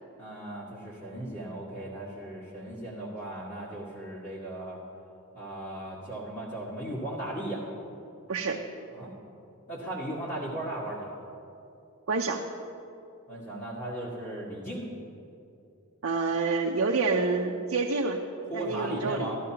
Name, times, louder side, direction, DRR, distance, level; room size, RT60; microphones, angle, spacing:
voice 1, 0.2-4.8 5.3-7.6 8.9-9.1 9.7-11.2 13.3-14.9 18.5-19.4, right 1 dB, 35° left, -8 dB, 1.8 m, -36 dB
voice 2, 8.3-8.6 12.1-12.4 16.0-18.2 18.5-19.4, right 4 dB, 70° right, 0 dB, 0.6 m, -28 dB
14.5 x 13.0 x 2.9 m, 2.6 s
head